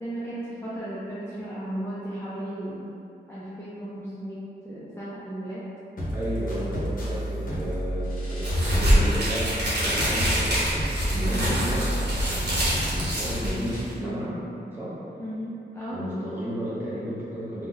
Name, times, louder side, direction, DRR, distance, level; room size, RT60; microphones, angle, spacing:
voice 1, 0.0-2.9 3.3-5.6 15.2-16.0, right 1 dB, 15° left, -10 dB, 0.3 m, -35 dB
sound 1, 6.0-14.0, right 1 dB, 55° left, 0.7 m, -32 dB
voice 2, 6.1-10.6 11.1-12.0 12.2-14.4 14.7-15.0 15.9-17.7, equal, 10° right, -10 dB, 0.7 m, -33 dB
sound 2, 8.4-13.9, equal, 75° right, 0.9 m, -25 dB
2.7 x 2.1 x 3.7 m, 2.7 s
wide cardioid pair, 170°, 17 cm